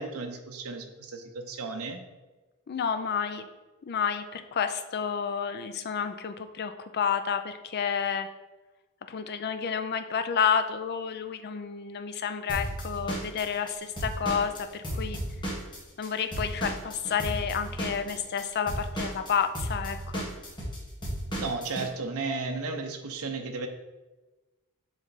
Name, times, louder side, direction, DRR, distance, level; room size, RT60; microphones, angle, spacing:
voice 1, 0.0-2.0 21.4-23.7, right 3 dB, 75° right, 5 dB, 0.7 m, -34 dB
voice 2, 2.7-3.5 3.9-8.3 9.1-15.2 16.0-20.3, left 7 dB, 45° left, 9 dB, 0.4 m, -30 dB
Drum kit / Drum, 12.5-16.1 16.3-21.9, right 1 dB, 20° left, 1.5 m, -34 dB
7.2 x 3.3 x 4.0 m, 1.2 s
head